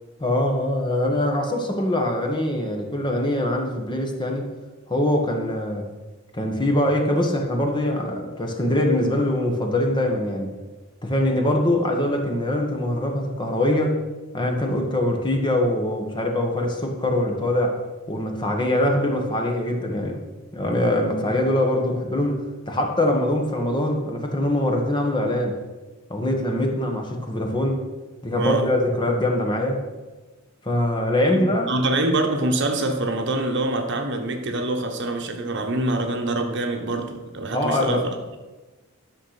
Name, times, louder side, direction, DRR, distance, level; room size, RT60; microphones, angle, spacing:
voice 1, 0.2-4.5 4.9-5.9 6.3-10.6 11.0-14.0 14.3-17.8 18.1-20.2 20.5-25.6 26.1-27.8 28.2-29.8 30.6-31.7 37.5-38.0, left 1 dB, 20° left, 1.4 m, -23 dB
voice 2, 28.4-28.7 31.2-38.4, right 2 dB, 60° right, 1.2 m, -25 dB
11.5 x 6.6 x 5.9 m
head